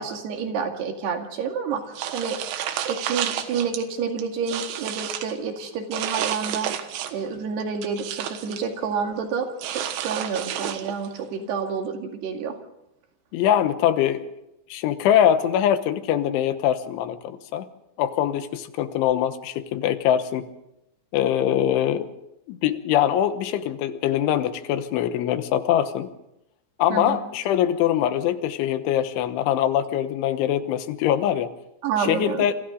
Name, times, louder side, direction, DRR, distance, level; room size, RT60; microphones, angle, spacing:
voice 1, 0.0-2.4 2.9-6.7 7.1-12.6 26.9-27.2 31.8-32.5, right 6 dB, 65° right, 4 dB, 4.0 m, -29 dB
sound 1, 2.0-3.8 4.2-5.3 5.9-7.3 7.6-8.7 9.6-11.1, right 10 dB, 85° right, 3.7 m, -30 dB
voice 2, 13.3-14.3 14.7-17.7 18.0-20.5 21.1-22.1 22.5-26.1 26.8-31.5 32.0-32.5, left 10 dB, 85° left, 10 dB, 3.6 m, -23 dB
27.5 x 26.0 x 3.9 m, 0.85 s
omnidirectional pair, 5.3 m